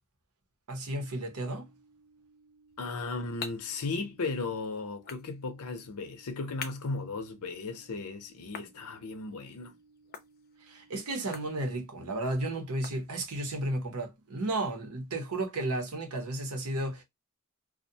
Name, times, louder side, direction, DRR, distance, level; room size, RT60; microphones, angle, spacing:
voice 1, 0.7-1.7 10.7-17.0, right 2 dB, 85° right, 0.8 m, -33 dB
sound 1, 1.0-11.0, right 3 dB, 5° right, 0.7 m, -63 dB
sound 2, 2.7-13.6, left 6 dB, 45° left, 0.5 m, -49 dB
voice 2, 2.8-9.7, left 3 dB, 85° left, 0.6 m, -36 dB
2.4 x 2.1 x 2.7 m
head